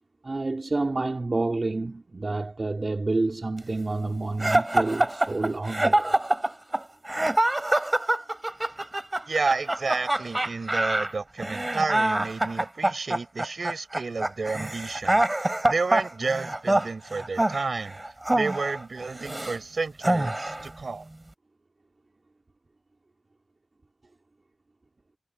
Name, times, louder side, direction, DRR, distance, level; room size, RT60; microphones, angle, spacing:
voice 1, 0.2-6.2, right 2 dB, 45° right, 2.6 m, -28 dB
sound 1, 4.4-19.6 20.0-20.7, right 1 dB, 20° right, 6.5 m, -25 dB
voice 2, 9.3-15.2 15.7-18.0 18.3-21.1, right 4 dB, 60° right, 5.2 m, -31 dB
wide cardioid pair, 70°, 0 cm